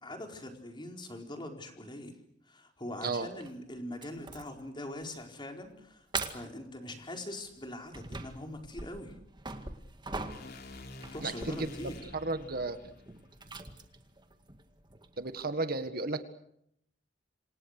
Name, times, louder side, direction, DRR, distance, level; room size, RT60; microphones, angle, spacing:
voice 1, 0.0-2.1 2.4-9.2 11.1-12.1, left 1 dB, 25° left, 3 dB, 4.4 m, -42 dB
sound 1, 3.4-3.5 4.0-4.7 5.0-5.2 5.6-5.7 6.1-6.6 7.4-15.5, right 3 dB, 25° right, 2.0 m, -43 dB
sound 2, 10.3-14.4, left 2 dB, 55° left, 3.5 m, -50 dB
voice 2, 11.2-12.8 15.2-16.2, right 3 dB, 55° right, 9 dB, 1.7 m, -34 dB
28.0 x 26.5 x 6.7 m, 0.76 s
head